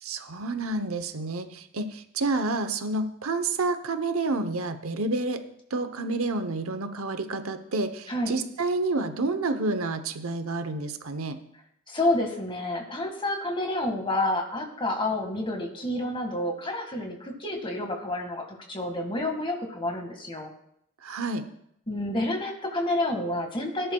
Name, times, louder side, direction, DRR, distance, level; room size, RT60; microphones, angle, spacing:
voice 1, 0.0-5.4 5.7-11.4 21.0-21.4, right 3 dB, 75° right, 9 dB, 0.8 m, -29 dB
voice 2, 11.9-20.5 21.9-23.9, left 1 dB, 25° left, 3 dB, 1.7 m, -29 dB
18.0 x 10.5 x 2.3 m, 0.74 s
head